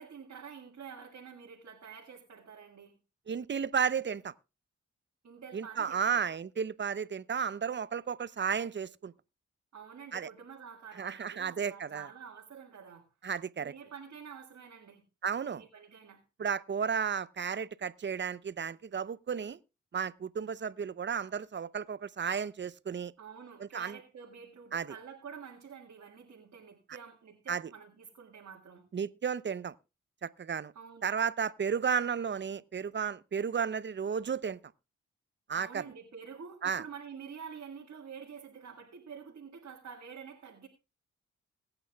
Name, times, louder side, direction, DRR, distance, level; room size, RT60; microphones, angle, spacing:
voice 1, 0.0-3.0 5.2-6.2 9.7-13.1 13.6-15.0 15.5-16.2 23.2-28.8 30.7-31.1 35.5-40.7, right 6 dB, 60° right, 1.8 m, -48 dB
voice 2, 3.3-4.3 5.5-9.1 10.1-10.3 11.0-12.1 13.2-13.7 15.2-15.6 16.4-19.6 19.9-23.1 23.7-24.0 24.7-24.9 27.5-27.7 28.9-29.7 30.2-30.7 31.0-34.6 35.5-35.8 36.6-36.8, right 7 dB, 40° right, 0.7 m, -33 dB
21.5 x 8.9 x 2.3 m
supercardioid pair, 50°, 30 cm